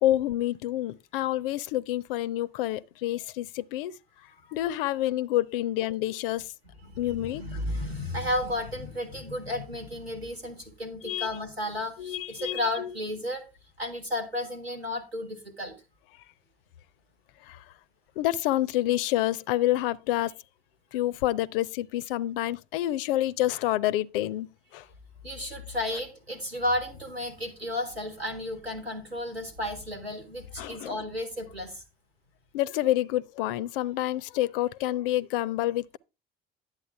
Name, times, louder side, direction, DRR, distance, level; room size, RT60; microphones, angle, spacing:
voice 1, 0.0-3.9 4.2-6.5 7.0-7.4 11.0-11.3 12.0-12.9 17.4-17.7 18.2-20.3 20.9-24.9 30.6-31.0 32.5-36.0, left 14 dB, 65° left, 0.5 m, -28 dB
voice 2, 6.8-13.4 13.8-15.8 25.2-31.8, left 1 dB, 90° right, 1.5 m, -33 dB
10.5 x 8.2 x 3.4 m
figure-of-eight pair, 55°, 30 cm